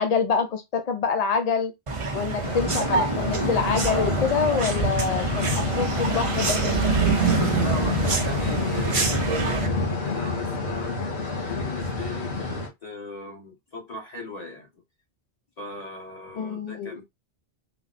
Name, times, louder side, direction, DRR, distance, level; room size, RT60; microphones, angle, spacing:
voice 1, 0.0-1.7 2.1-6.6 16.4-17.0, left 6 dB, 55° left, 0.5 m, -26 dB
sound 1, 1.9-9.7, right 5 dB, 35° right, 0.7 m, -26 dB
sound 2, 2.4-12.7, left 3 dB, 75° left, 2.1 m, -28 dB
voice 2, 7.4-14.7 15.6-17.0, left 4 dB, 35° left, 1.4 m, -38 dB
4.0 x 2.0 x 4.0 m
omnidirectional pair, 1.1 m